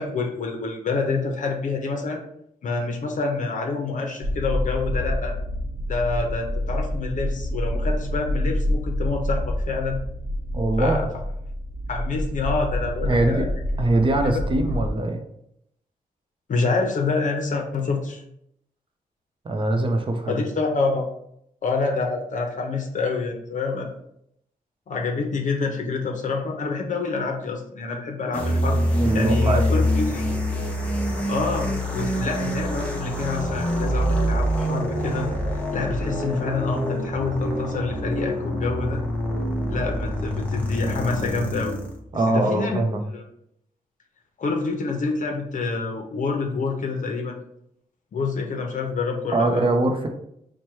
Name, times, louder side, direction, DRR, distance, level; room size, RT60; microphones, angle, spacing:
voice 1, 0.0-2.2 2.6-5.3 5.9-10.0 10.8-11.1 11.9-13.5 14.3-14.4 16.5-18.2 20.3-21.0 21.6-23.9 24.9-28.8 29.1-30.3 31.3-35.3 35.7-39.0 39.7-41.8 42.3-42.8 43.1-43.2 44.4-47.4 48.1-49.6, left 4 dB, 55° left, 2 dB, 0.6 m, -27 dB
sound 1, 4.2-14.9, equal, 75° right, 0.8 m, -27 dB
voice 2, 10.5-11.0 13.0-13.5 13.8-15.2 19.4-20.4 29.0-29.8 42.1-43.0 49.3-50.1, right 2 dB, 35° right, 5 dB, 0.6 m, -22 dB
sound 2, 28.3-42.0, equal, 10° left, 0.7 m, -25 dB
4.3 x 2.2 x 4.6 m, 0.75 s
wide cardioid pair, 145°, 15 cm